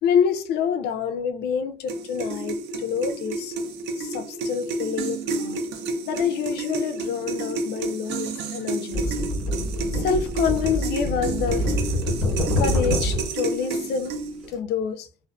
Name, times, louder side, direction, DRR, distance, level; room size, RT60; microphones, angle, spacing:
voice 1, 0.0-3.6 4.0-5.6 6.0-9.2 9.9-11.8 12.6-14.2 14.5-15.1, left 7 dB, 75° left, 0.4 m, -27 dB
sound 1, 1.9-14.5, right 3 dB, 85° right, 0.5 m, -30 dB
sound 2, 8.9-13.3 14.4-14.6, left 1 dB, ahead, 1.2 m, -26 dB
2.4 x 2.4 x 2.3 m
cardioid pair, 110°, 17 cm